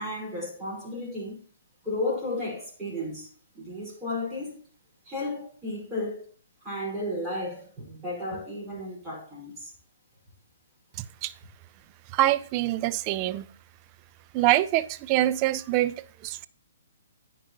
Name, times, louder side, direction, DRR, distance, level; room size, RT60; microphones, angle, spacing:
voice 1, 0.0-1.4 1.8-3.3 3.5-4.6 5.1-6.2 6.6-9.7, left 1 dB, 10° right, 5.1 m, -33 dB
voice 2, 11.0-11.3 12.1-13.5 14.3-16.5, right 15 dB, 25° right, 0.4 m, -25 dB
16.0 x 5.4 x 2.9 m
figure-of-eight pair, 125°, 0 cm